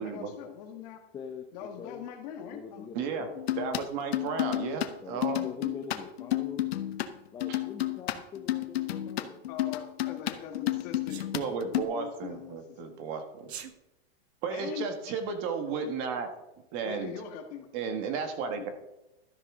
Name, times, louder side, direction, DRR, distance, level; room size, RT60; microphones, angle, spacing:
voice 1, 0.0-1.0 1.5-2.9 9.5-11.2 11.7-13.0 14.5-15.1 15.8-16.0 16.8-17.7 18.5-18.7, left 8 dB, 40° left, 5 dB, 1.8 m, -41 dB
voice 2, 1.1-1.5 1.8-2.1 2.5-3.4 5.0-6.7 7.3-9.4, left 6 dB, 10° left, 4 dB, 0.7 m, -43 dB
voice 3, 2.9-3.3 3.6-5.5 7.5-7.6 11.3-13.5 14.4-16.3 16.7-17.1 17.7-18.7, right 5 dB, 35° right, 6 dB, 1.6 m, -33 dB
sound 1, 3.4-4.9 5.2-7.1 7.4-11.8, left 14 dB, 75° left, 1.2 m, -31 dB
Sneeze, 11.1-11.3 13.4-13.7, right 9 dB, 80° right, 1.4 m, -42 dB
13.0 x 12.0 x 3.8 m, 0.93 s
supercardioid pair, 165°, 32 cm